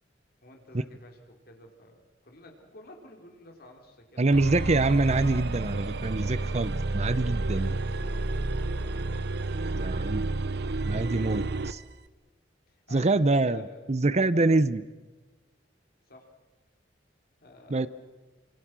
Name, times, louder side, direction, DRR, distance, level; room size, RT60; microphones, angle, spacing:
voice 1, 0.4-5.4 7.4-9.2 9.5-9.7 10.1-10.2 12.7-13.8 16.0-16.3 17.4-17.9, left 1 dB, 60° left, 2 dB, 4.2 m, -52 dB
voice 2, 4.2-7.8 9.8-10.3 10.9-11.8 12.9-13.6 13.9-14.8 17.7-17.9, right 2 dB, 40° right, 15 dB, 0.7 m, -25 dB
sound 1, 4.3-11.8, right 2 dB, 65° right, 0.9 m, -30 dB
28.0 x 26.5 x 6.3 m, 1.2 s
head